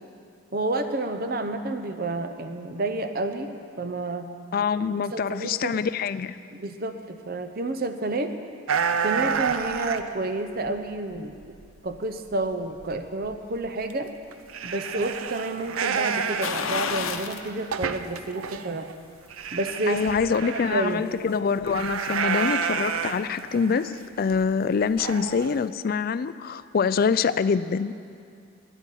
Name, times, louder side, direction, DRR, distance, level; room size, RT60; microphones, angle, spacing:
voice 1, 0.5-4.3 5.1-5.8 6.5-8.3 9.0-11.3 11.8-14.1 14.6-18.9 19.5-20.0 20.4-21.0, right 2 dB, 45° right, 8 dB, 0.7 m, -30 dB
voice 2, 4.5-6.4 19.9-27.9, left 5 dB, 45° left, 14 dB, 0.3 m, -25 dB
sound 1, 8.7-10.1 10.7-11.6 11.9-12.0 12.5-12.6 12.8-13.0 13.2-13.3 13.9-14.0 14.3-18.9 19.3-21.0 21.6-24.0 24.3-24.4 25.0-25.6, right 6 dB, 90° right, 0.5 m, -29 dB
sound 2, 16.4-17.5 17.9-18.0 19.5-20.3 20.6-20.7, left 6 dB, 85° left, 0.7 m, -31 dB
10.0 x 8.5 x 9.9 m, 2.3 s
head